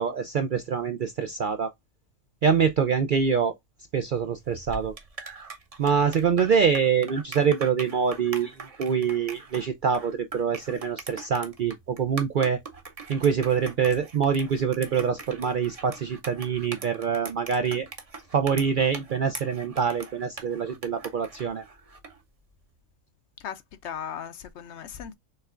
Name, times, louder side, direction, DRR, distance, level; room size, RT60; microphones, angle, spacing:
voice 1, 0.0-1.7 2.4-3.6 3.9-4.9 5.8-12.6 13.1-17.9 18.3-21.6, right 6 dB, 60° right, 0.5 m, -25 dB
sound 1, 4.4-22.2, right 4 dB, 30° right, 0.8 m, -42 dB
voice 2, 23.4-25.1, left 8 dB, 65° left, 0.8 m, -37 dB
6.6 x 3.3 x 2.4 m
omnidirectional pair, 1.4 m